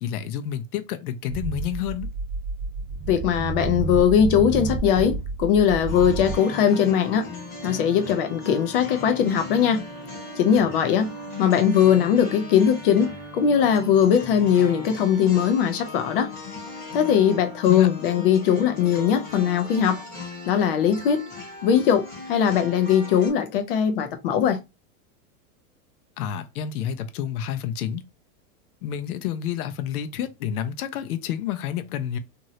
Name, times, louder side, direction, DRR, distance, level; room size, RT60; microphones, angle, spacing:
voice 1, 0.0-2.1 17.7-17.9 26.2-28.0 28.8-32.2, left 9 dB, 75° left, 0.6 m, -29 dB
sound 1, 1.3-6.4, right 4 dB, 10° right, 0.8 m, -30 dB
voice 2, 3.1-7.3 7.6-9.8 10.4-11.1 11.4-16.3 16.9-20.0 20.5-21.2 21.6-24.6, left 8 dB, 40° left, 0.5 m, -20 dB
sound 2, 5.9-23.3, left 3 dB, 20° left, 1.0 m, -38 dB
3.0 x 2.6 x 2.6 m
supercardioid pair, 165°, 45 cm